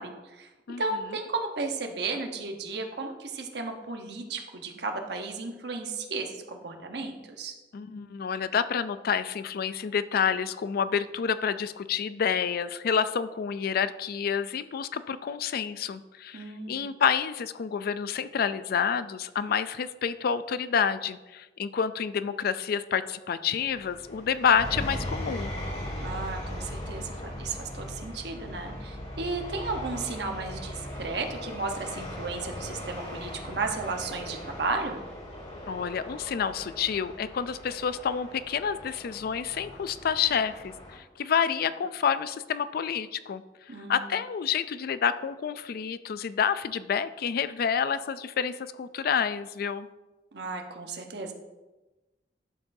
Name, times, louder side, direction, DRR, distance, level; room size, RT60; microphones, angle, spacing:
voice 1, 0.0-0.5 0.8-7.5 16.3-16.9 26.0-35.0 43.7-44.1 50.3-51.3, right 3 dB, 70° right, 4 dB, 1.0 m, -34 dB
voice 2, 7.7-25.5 35.7-43.4 43.9-49.9, left 7 dB, 60° left, 13 dB, 0.4 m, -28 dB
sound 1, 23.6-41.0, left 1 dB, 40° left, 2.3 m, -39 dB
11.5 x 6.9 x 2.7 m, 1.1 s
head